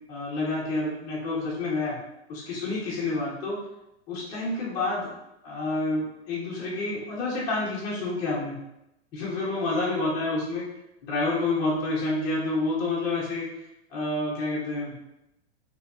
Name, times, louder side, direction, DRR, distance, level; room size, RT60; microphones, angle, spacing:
voice 1, 0.1-2.0 2.3-3.6 4.1-5.1 5.4-8.6 9.1-10.6 11.0-13.5 13.9-14.9, left 2 dB, 10° left, -6 dB, 0.4 m, -28 dB
2.7 x 2.7 x 3.3 m, 0.87 s
supercardioid pair, 175°, 32 cm